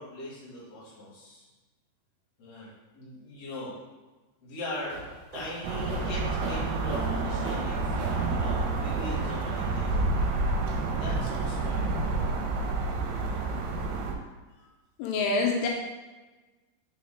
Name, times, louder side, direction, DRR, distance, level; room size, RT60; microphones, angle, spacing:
voice 1, 0.0-1.5 2.4-3.7 4.4-5.0 5.3-10.3 11.0-12.0, left 1 dB, 45° left, -8 dB, 2.2 m, -40 dB
sound 1, 4.7-9.6, right 2 dB, 60° right, 2.2 m, -40 dB
sound 2, 5.6-14.1, right 3 dB, 80° right, 3.0 m, -29 dB
voice 2, 15.0-15.7, left 3 dB, 80° left, 0 dB, 3.2 m, -26 dB
7.1 x 4.6 x 3.6 m, 1.2 s
omnidirectional pair, 5.6 m